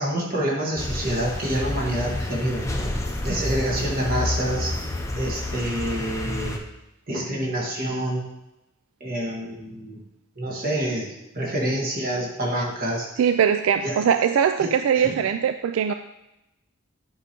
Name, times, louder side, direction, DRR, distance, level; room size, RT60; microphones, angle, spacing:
voice 1, 0.0-2.7 3.2-4.7 5.2-6.6 7.1-8.3 9.0-10.0 10.3-13.1 13.8-14.0 14.6-15.1, right 1 dB, 45° right, -3 dB, 1.6 m, -27 dB
sound 1, 0.8-6.6, left 1 dB, 15° left, 0.6 m, -29 dB
voice 2, 13.2-15.9, right 8 dB, 85° right, 8 dB, 0.3 m, -21 dB
9.1 x 4.8 x 2.9 m, 0.91 s
head